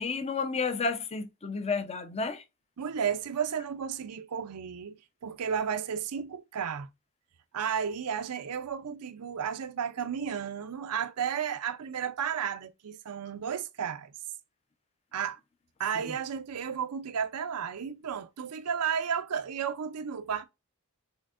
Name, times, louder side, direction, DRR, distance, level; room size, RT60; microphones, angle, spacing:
voice 1, 0.0-2.4, left 4 dB, 30° left, 0.6 m, -31 dB
voice 2, 2.8-4.9 5.2-6.9 7.5-14.1 15.1-15.4 15.8-20.4, right 7 dB, 85° right, 0.5 m, -33 dB
6.3 x 3.5 x 2.4 m
head